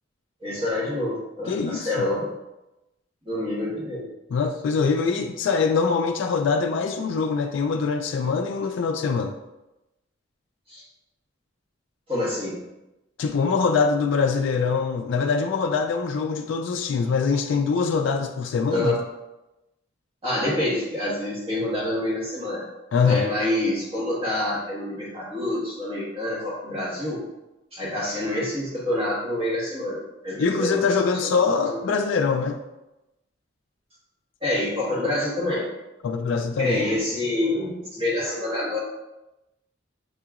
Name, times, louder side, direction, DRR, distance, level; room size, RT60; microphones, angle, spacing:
voice 1, 0.4-2.3 3.2-4.1 10.7-10.8 12.1-12.6 18.7-18.9 20.2-22.6 23.0-27.2 27.7-31.3 31.6-31.8 34.4-35.7 36.6-38.8, left 1 dB, 30° right, -6 dB, 1.4 m, -27 dB
voice 2, 1.5-2.1 4.3-9.4 13.2-19.0 22.9-23.3 30.4-32.6 36.0-36.8, left 5 dB, 70° left, 4 dB, 0.3 m, -23 dB
7.1 x 2.9 x 2.4 m, 0.97 s
head